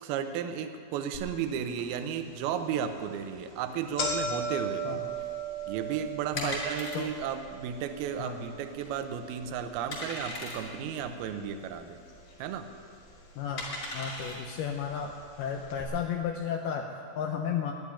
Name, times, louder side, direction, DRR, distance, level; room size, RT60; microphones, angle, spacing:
voice 1, 0.0-5.0 5.7-12.0 12.4-12.7, right 8 dB, 80° right, 8 dB, 2.3 m, -34 dB
sound 1, 1.1-1.2 1.8-1.9 2.7-2.9 3.2-3.3 3.6-11.8 12.1-12.8 13.6-13.7 14.7-14.8 15.0-15.1 15.7-15.8, right 2 dB, 60° left, 3.0 m, -38 dB
sound 2, 5.1-15.7, left 1 dB, 35° left, 3.6 m, -41 dB
voice 2, 13.4-13.7 13.9-17.7, left 7 dB, 80° left, 3 dB, 2.3 m, -33 dB
12.0 x 11.0 x 9.9 m, 2.3 s
omnidirectional pair, 5.2 m